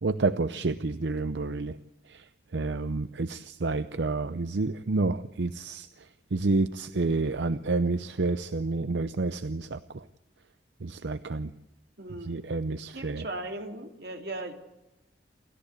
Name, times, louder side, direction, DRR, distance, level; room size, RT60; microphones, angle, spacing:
voice 1, 0.0-1.8 2.1-2.2 2.5-5.9 6.3-10.0 10.8-11.5 12.3-13.2, right 3 dB, 85° right, 12 dB, 0.7 m, -29 dB
voice 2, 12.0-12.5 12.9-14.5, right 2 dB, 65° right, 4 dB, 2.9 m, -38 dB
28.5 x 13.5 x 8.5 m, 0.95 s
head